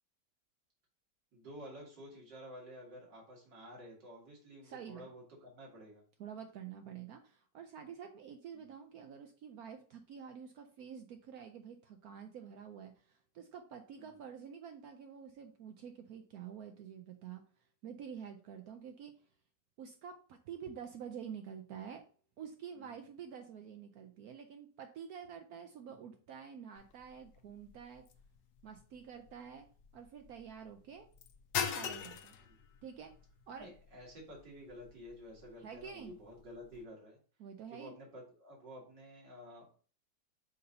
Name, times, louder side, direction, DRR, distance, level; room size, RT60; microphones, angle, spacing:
voice 1, 1.3-6.0 8.5-8.7 12.5-12.6 14.0-14.2 22.7-23.0 25.8-26.0 32.4-32.6 33.6-37.2 37.7-39.8, equal, 85° right, -3 dB, 2.8 m, -51 dB
voice 2, 4.6-5.1 6.2-17.4 17.8-19.1 19.8-22.0 22.4-28.0 28.6-29.7 29.9-31.1 31.7-32.3 32.8-33.1 33.5-33.7 35.6-36.1 37.4-37.9, right 7 dB, 70° right, 6 dB, 1.0 m, -48 dB
sound 1, 26.8-36.8, left 7 dB, 70° left, 1.2 m, -45 dB
6.7 x 2.7 x 5.3 m, 0.42 s
omnidirectional pair, 1.9 m